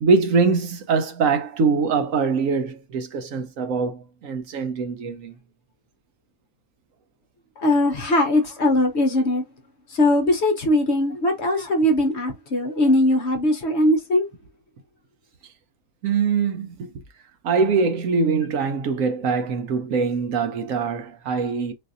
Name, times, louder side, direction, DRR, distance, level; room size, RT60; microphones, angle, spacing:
voice 1, 0.0-5.4 16.0-16.9 17.4-21.7, right 5 dB, 70° right, 1.0 m, -23 dB
voice 2, 7.6-9.4 9.9-14.3, left 1 dB, 55° left, 0.9 m, -20 dB
4.0 x 2.5 x 2.5 m
omnidirectional pair, 1.6 m